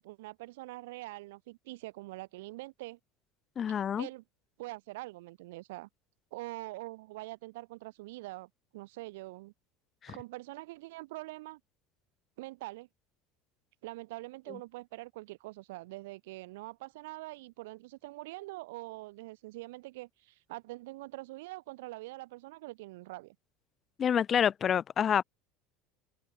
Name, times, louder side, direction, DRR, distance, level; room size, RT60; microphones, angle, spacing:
voice 1, 0.0-3.0 4.0-4.2 4.6-5.9 6.3-9.5 10.1-11.6 12.4-12.9 13.8-23.4, right 20 dB, 85° right, 5.7 m, -44 dB
voice 2, 3.6-4.1 10.0-10.1 24.0-25.2, left 8 dB, 35° left, 1.0 m, -27 dB
open air
supercardioid pair, 120°, 0 cm